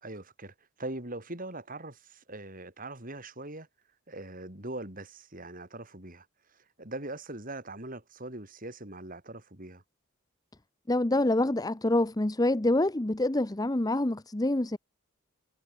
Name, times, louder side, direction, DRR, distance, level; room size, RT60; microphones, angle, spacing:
voice 1, 0.0-3.7 4.1-9.8, right 2 dB, 40° right, 4.5 m, -41 dB
voice 2, 10.9-14.8, left 1 dB, 20° left, 0.7 m, -26 dB
head